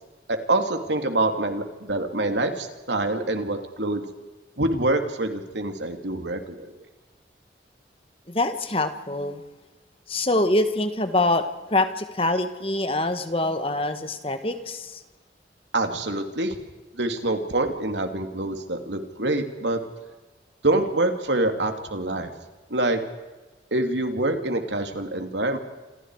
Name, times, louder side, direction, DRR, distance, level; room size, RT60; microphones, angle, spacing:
voice 1, 0.3-4.1 4.6-6.7 15.7-16.6 17.0-19.8 20.6-22.3 22.7-23.0 23.7-25.6, right 2 dB, 85° right, 5 dB, 2.8 m, -25 dB
voice 2, 8.3-9.4 10.1-15.0, left 2 dB, 30° left, 8 dB, 1.7 m, -25 dB
28.5 x 27.5 x 4.9 m, 1.2 s
head